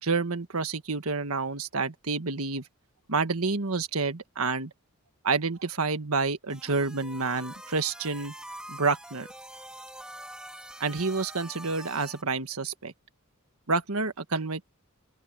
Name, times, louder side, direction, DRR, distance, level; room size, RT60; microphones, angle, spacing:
voice 1, 0.0-2.6 3.1-4.7 5.2-8.3 8.7-9.3 10.8-12.9 13.7-14.6, right 4 dB, 80° right, 1.5 m, -29 dB
sound 1, 6.5-12.2, right 1 dB, 5° right, 2.5 m, -44 dB
open air
head